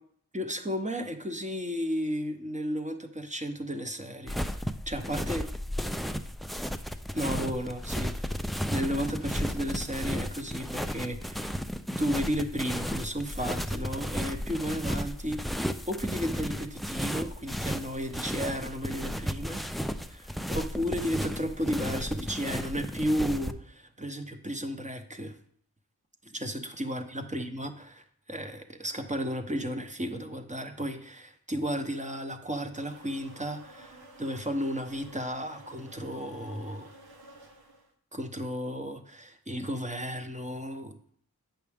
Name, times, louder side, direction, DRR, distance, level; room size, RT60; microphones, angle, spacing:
voice 1, 0.3-5.5 7.1-8.4 8.7-11.5 12.0-15.4 15.9-19.6 20.1-25.3 26.3-28.0 28.3-36.9 38.1-40.9, equal, 20° right, 6 dB, 0.9 m, -33 dB
sound 1, 4.3-23.5, equal, ahead, 0.4 m, -34 dB
sound 2, 32.7-37.9, right 2 dB, 80° right, 1.0 m, -52 dB
8.4 x 5.9 x 3.5 m, 0.62 s
wide cardioid pair, 50°, 37 cm